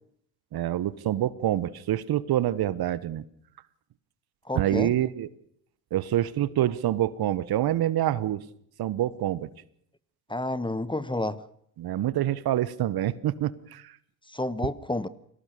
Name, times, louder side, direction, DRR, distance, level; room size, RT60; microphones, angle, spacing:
voice 1, 0.5-3.2 4.5-5.3 5.9-8.4 8.8-9.5 11.8-13.9, right 12 dB, 55° right, 18 dB, 1.2 m, -26 dB
voice 2, 4.4-4.9 10.3-11.5 14.3-15.1, left 2 dB, 10° left, 16 dB, 1.2 m, -30 dB
22.0 x 18.0 x 6.6 m, 0.67 s
hypercardioid pair, 60°, 45 cm